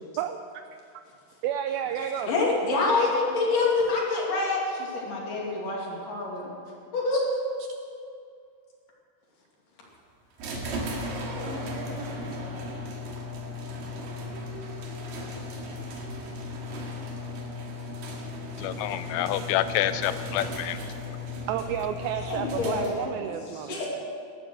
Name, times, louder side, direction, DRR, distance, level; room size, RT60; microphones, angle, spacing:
voice 1, 1.4-2.3 21.5-23.8, right 9 dB, 80° right, 8 dB, 2.2 m, -30 dB
voice 2, 2.3-6.5 6.9-7.2 22.2-23.9, left 3 dB, 55° left, -3 dB, 4.0 m, -27 dB
sound 1, 10.4-23.2, left 1 dB, 60° right, 3.4 m, -36 dB
voice 3, 18.5-21.2, left 12 dB, 90° left, 12 dB, 2.8 m, -28 dB
18.0 x 12.5 x 6.4 m, 2.4 s
omnidirectional pair, 4.7 m